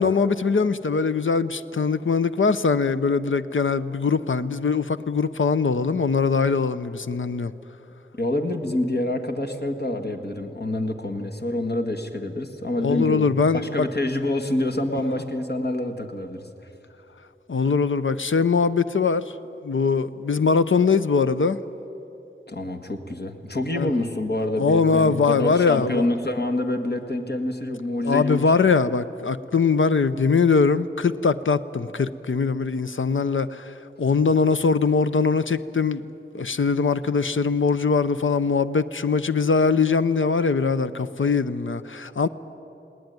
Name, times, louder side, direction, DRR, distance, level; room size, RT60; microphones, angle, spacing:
voice 1, 0.0-7.5 12.8-13.9 14.9-15.0 17.5-19.3 19.6-21.6 23.7-23.9 24.6-26.1 28.0-36.0 36.3-42.3, left 5 dB, 75° left, 0.7 m, -22 dB
voice 2, 8.1-13.3 13.5-16.5 22.5-28.5, left 1 dB, 55° left, 1.8 m, -27 dB
19.5 x 18.5 x 9.5 m
wide cardioid pair, 65°, 21 cm